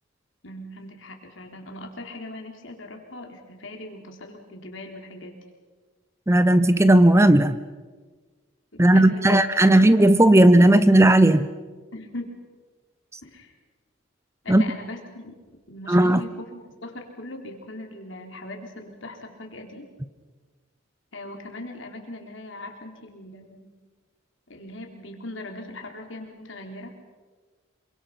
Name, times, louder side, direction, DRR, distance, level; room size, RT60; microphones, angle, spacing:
voice 1, 0.4-5.4 8.7-9.8 11.9-12.4 13.2-13.5 14.4-15.3 15.7-19.9 21.1-23.7 24.5-26.9, left 1 dB, 75° left, 2 dB, 3.9 m, -40 dB
voice 2, 6.3-7.6 8.8-11.5 14.5-14.6 15.9-16.2, right 1 dB, 15° right, 13 dB, 0.6 m, -15 dB
27.0 x 24.5 x 5.8 m, 1.4 s
head